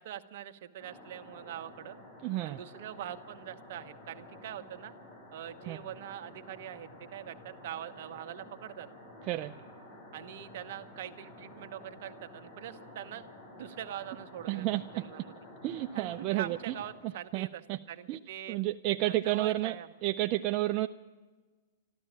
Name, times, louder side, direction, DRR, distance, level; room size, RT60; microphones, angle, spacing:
voice 1, 0.0-2.0 2.4-4.9 5.3-8.9 10.1-14.7 14.9-15.3 15.9-17.6 17.9-18.6 19.0-19.9, right 11 dB, 60° right, 8 dB, 1.0 m, -43 dB
sound 1, 0.8-16.9, left 1 dB, 45° left, 6.9 m, -51 dB
voice 2, 2.2-2.6 5.7-5.8 9.2-9.5 14.5-15.1 15.6-16.7 17.3-17.8 18.1-18.2 18.5-19.7 20.0-20.9, right 16 dB, 40° right, 7 dB, 0.4 m, -31 dB
13.0 x 12.5 x 8.5 m, 1.3 s
hypercardioid pair, 130°, 0 cm